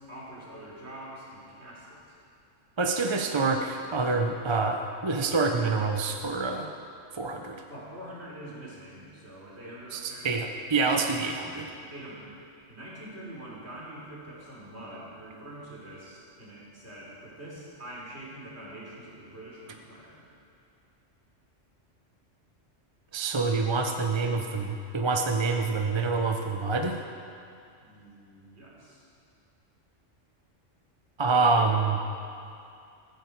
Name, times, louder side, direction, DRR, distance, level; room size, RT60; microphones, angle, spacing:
voice 1, 0.0-2.0 7.7-10.4 11.6-12.3 12.7-20.3 27.8-29.1, right 1 dB, 60° right, -5 dB, 3.8 m, -45 dB
voice 2, 2.8-6.7 7.1-7.6 9.9-11.7 23.1-27.0 31.2-32.0, right 4 dB, 30° right, 3 dB, 0.7 m, -26 dB
14.5 x 14.5 x 4.6 m, 2.5 s
omnidirectional pair, 1.3 m